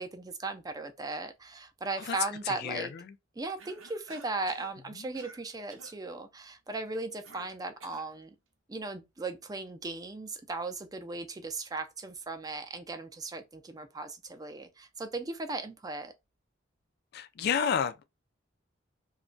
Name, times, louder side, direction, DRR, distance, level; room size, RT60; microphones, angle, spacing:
voice 1, 0.0-2.9 3.4-8.4 8.7-16.1, right 3 dB, 20° right, 0.4 m, -37 dB
voice 2, 2.5-2.9 5.0-5.1 17.1-18.0, left 7 dB, 55° left, 0.3 m, -30 dB
Cough, 3.6-4.7 5.1-5.4 5.7-6.0 7.2-8.1, right 4 dB, 85° right, 0.6 m, -51 dB
2.3 x 2.1 x 3.7 m
head